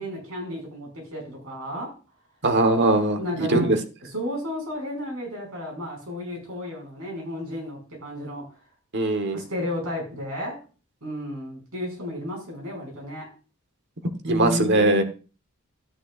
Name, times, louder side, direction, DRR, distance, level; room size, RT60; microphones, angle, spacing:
voice 1, 0.0-1.9 3.2-8.5 9.3-10.6 11.0-13.3 14.2-15.0, left 1 dB, 80° right, 5.7 m, -32 dB
voice 2, 2.4-3.8 8.9-9.4 14.3-15.0, right 2 dB, 55° right, 1.2 m, -21 dB
12.5 x 9.4 x 2.5 m
head